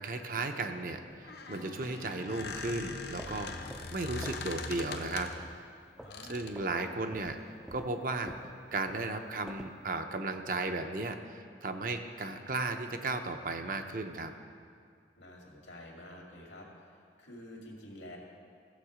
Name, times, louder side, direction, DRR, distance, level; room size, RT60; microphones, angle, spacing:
voice 1, 0.0-3.5 3.9-5.3 6.3-7.4 7.7-8.3 8.7-14.3, right 2 dB, 45° right, 6 dB, 0.6 m, -35 dB
Squeak, 1.1-5.5 6.1-6.6, left 3 dB, 60° left, 0.8 m, -41 dB
Strum, 1.5-5.7, right 2 dB, 65° right, 1.3 m, -56 dB
sound 1, 3.0-4.5 4.8-5.1 5.4-6.3 6.5-6.8 7.1-9.8, equal, 5° right, 0.4 m, -49 dB
voice 2, 6.0-6.5 15.2-18.2, left 1 dB, 85° left, -1 dB, 2.2 m, -49 dB
15.0 x 7.1 x 4.9 m, 2.2 s
head